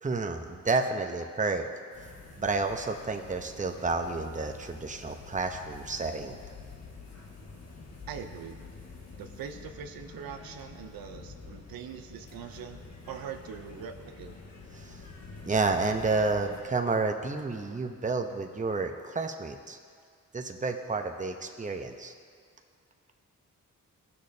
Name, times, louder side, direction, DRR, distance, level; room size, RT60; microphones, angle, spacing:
voice 1, 0.0-1.7 2.4-6.4 14.8-15.0 15.4-19.8 20.3-22.1, right 3 dB, 20° right, 5 dB, 0.8 m, -30 dB
sound 1, 1.9-16.6, left 4 dB, 45° left, 1.6 m, -48 dB
voice 2, 8.1-8.6 9.2-14.4, right 7 dB, 85° right, 6 dB, 0.7 m, -42 dB
17.0 x 6.5 x 2.8 m, 2.1 s
cardioid pair, 70°, 34 cm